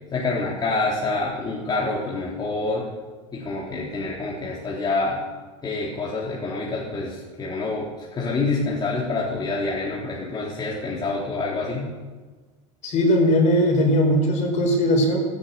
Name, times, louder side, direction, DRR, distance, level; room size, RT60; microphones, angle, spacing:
voice 1, 0.1-2.9 3.3-5.2 5.6-11.9, left 3 dB, 25° left, -5 dB, 4.0 m, -27 dB
voice 2, 12.8-15.3, equal, 45° left, 2 dB, 5.5 m, -19 dB
16.0 x 12.5 x 7.1 m, 1.3 s
supercardioid pair, 120°, 17 cm